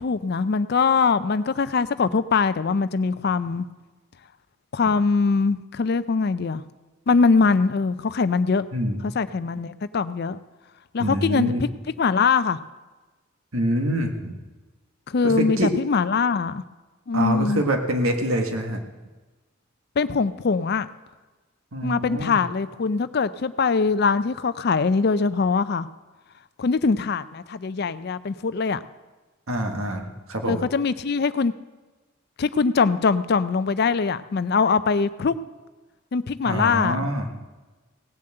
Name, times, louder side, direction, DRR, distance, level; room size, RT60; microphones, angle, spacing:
voice 1, 0.0-3.6 4.7-6.6 7.1-8.7 9.0-10.4 10.9-11.7 12.0-12.6 15.1-16.6 17.1-17.6 20.0-20.9 21.8-25.9 26.6-28.8 30.4-31.5 32.4-35.4 36.1-37.0, left 4 dB, 50° left, 14 dB, 0.4 m, -22 dB
voice 2, 8.7-9.0 11.0-11.6 13.5-14.4 15.2-15.7 17.1-18.8 21.7-22.4 29.5-30.6 36.4-37.3, right 1 dB, 80° right, 3 dB, 1.7 m, -25 dB
17.5 x 7.3 x 7.8 m, 1.2 s
head